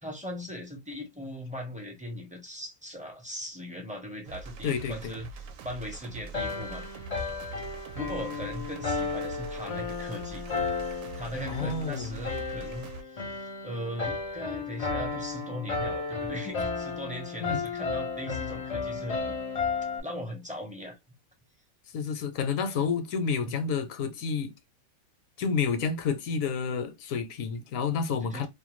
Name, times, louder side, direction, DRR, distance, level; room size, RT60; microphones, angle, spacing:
voice 1, 0.0-6.9 7.9-10.4 10.8-19.3 20.0-21.0 23.4-23.5 28.2-28.5, equal, 10° right, 0.4 m, -39 dB
sound 1, 4.2-13.0, right 4 dB, 70° right, 0.9 m, -44 dB
voice 2, 4.6-5.1 11.5-12.1 17.4-17.7 21.9-24.5 25.4-28.5, left 5 dB, 75° left, 1.0 m, -30 dB
sound 2, 6.3-20.0, left 4 dB, 45° left, 0.5 m, -33 dB
2.5 x 2.2 x 3.0 m
omnidirectional pair, 1.5 m